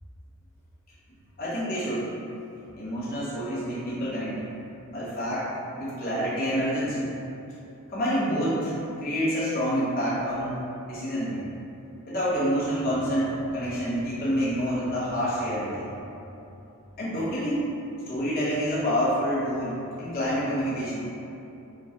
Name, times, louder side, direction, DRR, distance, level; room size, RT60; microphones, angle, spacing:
voice 1, 1.4-2.1 2.8-4.4 4.9-7.1 7.9-8.7 9.0-11.5 12.0-15.9 17.0-17.7 18.1-21.0, equal, 40° left, -10 dB, 0.9 m, -28 dB
5.1 x 2.2 x 2.9 m, 2.8 s
head